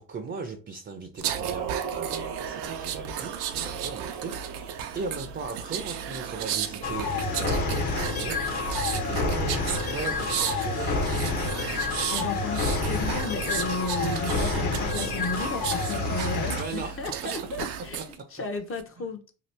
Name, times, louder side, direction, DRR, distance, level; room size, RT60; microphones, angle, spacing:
voice 1, 0.0-8.8 9.0-11.6 16.5-17.4 18.0-18.1 19.0-19.1, right 4 dB, 30° right, 0.5 m, -38 dB
sound 1, 1.2-18.1 18.5-18.8, right 8 dB, 75° right, 0.6 m, -34 dB
sound 2, 6.8-16.6, left 3 dB, 60° left, 1.2 m, -28 dB
voice 2, 12.1-19.4, left 3 dB, 35° left, 0.7 m, -34 dB
2.8 x 2.3 x 3.3 m
supercardioid pair, 75°, 41 cm